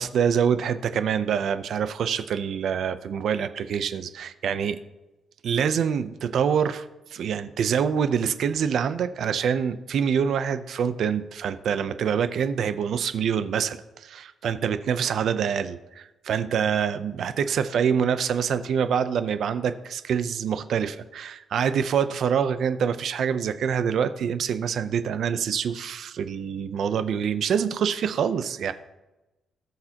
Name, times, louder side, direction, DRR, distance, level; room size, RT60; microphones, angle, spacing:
voice 1, 0.0-4.8 5.4-6.9 7.1-28.7, right 7 dB, 60° right, 11 dB, 0.6 m, -25 dB
19.0 x 6.6 x 2.9 m, 1.0 s
cardioid pair, 165°, 0 cm